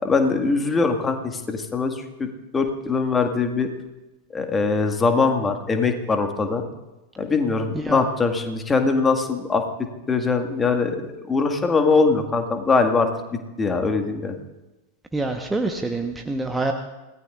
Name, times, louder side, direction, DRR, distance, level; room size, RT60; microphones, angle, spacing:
voice 1, 0.0-3.7 4.3-6.6 7.2-9.6 10.1-14.4, left 4 dB, 15° left, 5 dB, 1.9 m, -22 dB
voice 2, 15.1-16.7, right 2 dB, 10° right, 4 dB, 1.1 m, -26 dB
26.5 x 18.5 x 2.5 m, 1.1 s
figure-of-eight pair, 90°, 0 cm